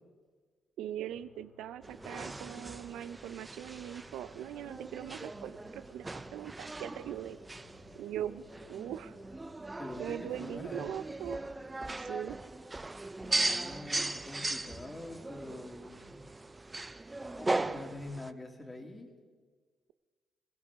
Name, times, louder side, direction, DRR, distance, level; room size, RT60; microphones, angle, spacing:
voice 1, 0.8-7.4 7.9-9.2 10.0-11.4 12.0-12.4, right 11 dB, 85° right, 13 dB, 0.5 m, -41 dB
sound 1, 1.1-10.7, left 4 dB, 90° left, 3.6 m, -62 dB
sound 2, 1.8-18.3, right 2 dB, 20° right, 0.5 m, -38 dB
voice 2, 9.8-10.9 13.2-16.2 17.2-19.1, left 2 dB, 20° left, 2 dB, 2.5 m, -45 dB
21.5 x 17.0 x 3.6 m, 1.5 s
cardioid pair, 90°, 0 cm